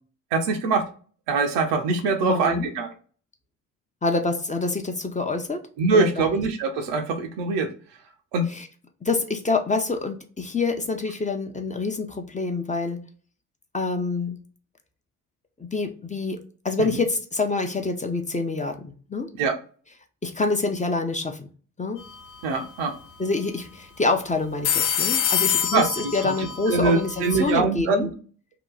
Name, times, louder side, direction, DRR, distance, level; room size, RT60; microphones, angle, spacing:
voice 1, 0.3-0.8 1.3-2.9 5.8-7.7 8.3-8.5 16.8-16.9 19.4-19.6 22.4-23.0 25.7-25.9 26.2-26.3 26.7-28.1, right 4 dB, 75° right, 5 dB, 0.7 m, -23 dB
voice 2, 2.2-2.7 4.0-5.7 5.9-6.4 8.5-8.7 9.0-13.0 13.7-14.4 15.6-19.3 20.2-21.5 21.8-22.0 23.2-28.1, left 3 dB, 15° left, 4 dB, 0.7 m, -26 dB
sound 1, 22.0-22.3 22.5-22.6 24.4-27.6, left 9 dB, 85° left, 0.7 m, -26 dB
2.9 x 2.3 x 3.7 m, 0.40 s
hypercardioid pair, 50°, 43 cm